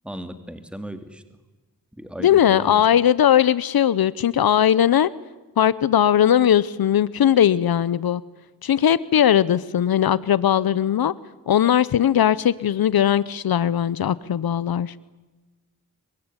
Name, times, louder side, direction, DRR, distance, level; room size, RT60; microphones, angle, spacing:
voice 1, 0.0-1.2 1.9-2.8, right 1 dB, 5° right, 9 dB, 2.8 m, -36 dB
voice 2, 2.2-5.1 5.6-8.2 8.6-11.1 11.5-14.9, left 10 dB, 85° left, 18 dB, 0.8 m, -19 dB
25.5 x 24.0 x 9.7 m, 1.2 s
cardioid pair, 50°, 35 cm